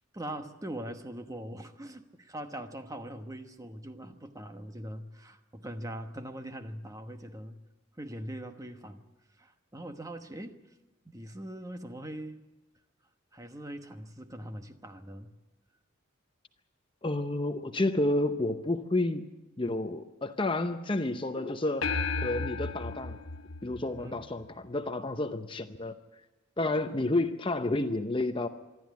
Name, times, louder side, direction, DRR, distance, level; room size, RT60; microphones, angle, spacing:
voice 1, 0.1-7.6 8.0-9.1 9.4-10.6 11.0-12.4 13.3-15.3 24.0-24.2, right 1 dB, 15° right, 7 dB, 1.1 m, -42 dB
voice 2, 17.0-19.3 19.6-23.2 23.6-25.9 26.6-28.5, left 2 dB, 25° left, 8 dB, 0.7 m, -30 dB
sound 1, 21.8-24.5, left 4 dB, 80° left, 1.3 m, -34 dB
25.5 x 12.5 x 9.4 m, 1.0 s
head